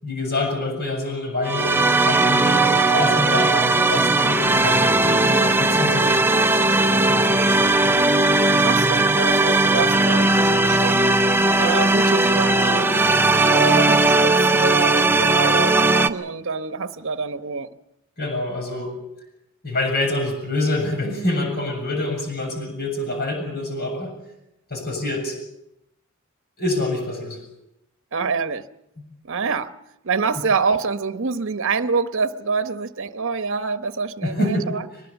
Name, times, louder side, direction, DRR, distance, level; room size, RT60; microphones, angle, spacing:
voice 1, 0.0-6.2 6.6-7.9 18.2-18.9 19.6-24.1 24.7-25.4 26.6-27.4 34.2-34.7, left 2 dB, 50° left, 7.4 m, -26 dB
sound 1, 1.4-16.1, right 2 dB, 10° right, 0.7 m, -18 dB
voice 2, 8.6-11.0 11.6-17.7 28.1-28.6 29.2-29.7 30.0-34.8, right 5 dB, 65° right, 0.9 m, -26 dB
23.0 x 20.5 x 7.1 m
head